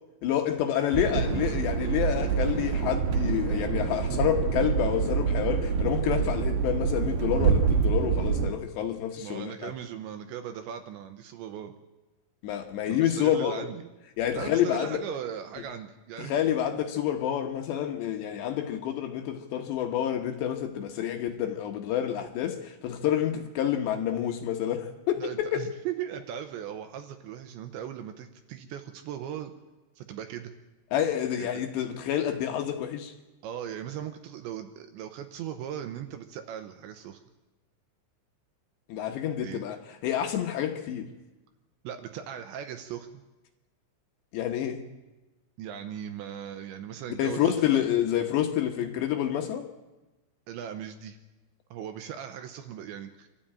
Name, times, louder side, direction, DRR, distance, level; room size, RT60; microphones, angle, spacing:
voice 1, 0.2-9.7 12.4-13.6 14.2-15.0 16.2-25.6 30.9-33.1 38.9-41.1 44.3-44.8 47.2-49.7, left 10 dB, 70° left, 2.9 m, -28 dB
sound 1, 0.9-8.5, right 6 dB, 65° right, 2.7 m, -26 dB
voice 2, 9.2-11.7 12.9-13.8 14.3-16.3 25.2-29.5 30.0-30.5 31.4-31.6 33.4-37.2 39.4-39.6 41.8-43.2 45.6-47.9 50.5-51.2 51.7-53.3, right 9 dB, 80° right, 2.8 m, -38 dB
27.0 x 13.0 x 8.8 m
omnidirectional pair, 5.9 m